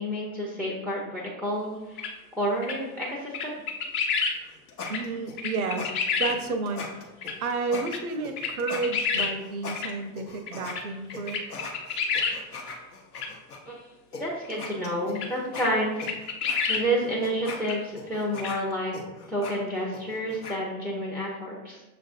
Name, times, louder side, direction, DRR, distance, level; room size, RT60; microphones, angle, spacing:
voice 1, 0.0-3.6 13.7-13.8 14.1-16.1 16.7-18.9 19.3-21.8, equal, 5° left, -2 dB, 0.4 m, -30 dB
sound 1, 2.0-2.1 2.6-2.8 3.3-4.4 4.9-5.0 5.4-6.3 7.2-7.3 7.9-8.0 8.4-9.3 9.7-9.9 10.5-10.8 11.1-12.3 13.1-13.3 15.1-15.3 15.6-15.7 16.0-16.8 17.6-17.8 18.4-18.5, left 5 dB, 50° left, 0.7 m, -28 dB
sound 2, 4.3-10.8 11.1-13.6 14.1-14.2 14.5-20.6, left 4 dB, 85° left, 0.7 m, -40 dB
voice 2, 4.9-7.1 7.4-11.5, right 4 dB, 75° right, 7 dB, 0.6 m, -31 dB
6.4 x 2.5 x 2.4 m, 1.1 s
figure-of-eight pair, 75°, 44 cm